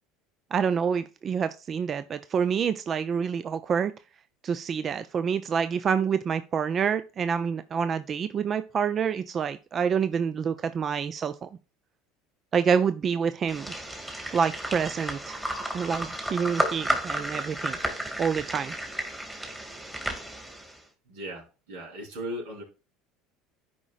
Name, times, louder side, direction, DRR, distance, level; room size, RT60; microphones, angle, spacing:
voice 1, 0.5-3.9 4.4-11.5 12.5-13.7 14.3-15.4 15.7-17.8 18.2-18.7, right 6 dB, 40° right, 0.4 m, -27 dB
sound 1, 13.5-20.8, right 1 dB, 10° right, 1.9 m, -32 dB
voice 2, 21.1-22.6, equal, 85° right, 3.8 m, -37 dB
11.0 x 5.0 x 2.4 m
supercardioid pair, 95°, 0 cm